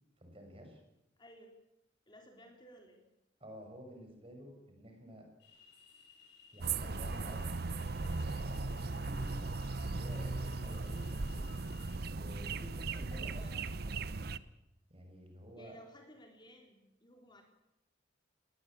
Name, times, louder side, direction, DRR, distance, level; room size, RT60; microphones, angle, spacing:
voice 1, 0.2-0.8 3.4-5.3 6.5-7.5 8.2-11.5 12.0-13.3 13.7-14.4 14.9-15.7, equal, 30° right, 4 dB, 6.2 m, -52 dB
voice 2, 1.2-1.5 2.1-3.1 12.6-13.6 15.6-17.4, equal, 25° left, 3 dB, 3.6 m, -57 dB
sound 1, 5.4-12.0, left 5 dB, 60° left, 6.6 m, -60 dB
sound 2, 6.6-14.4, right 3 dB, 55° right, 0.8 m, -37 dB
20.0 x 19.5 x 8.8 m, 0.86 s
head